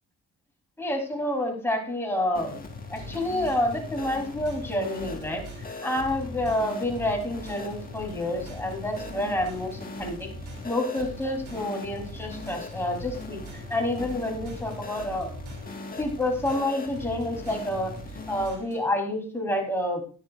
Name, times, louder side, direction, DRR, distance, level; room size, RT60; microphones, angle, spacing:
voice 1, 0.8-2.6 2.9-5.4 5.8-10.3 10.6-15.3 16.0-17.9 18.3-20.0, left 1 dB, 10° left, 1 dB, 3.3 m, -28 dB
sound 1, 2.3-18.5, left 3 dB, 30° left, 1.6 m, -40 dB
sound 2, 3.0-19.0, right 3 dB, 75° right, 2.9 m, -45 dB
10.5 x 10.5 x 2.5 m, 0.40 s
cardioid pair, 90°, 30 cm